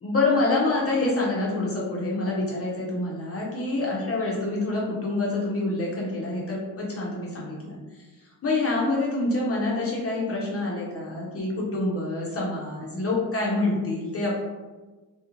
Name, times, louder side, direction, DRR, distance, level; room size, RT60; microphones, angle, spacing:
voice 1, 0.0-7.8 8.4-14.4, left 2 dB, 35° left, -4 dB, 0.5 m, -26 dB
2.8 x 2.1 x 2.4 m, 1.3 s
wide cardioid pair, 140°, 41 cm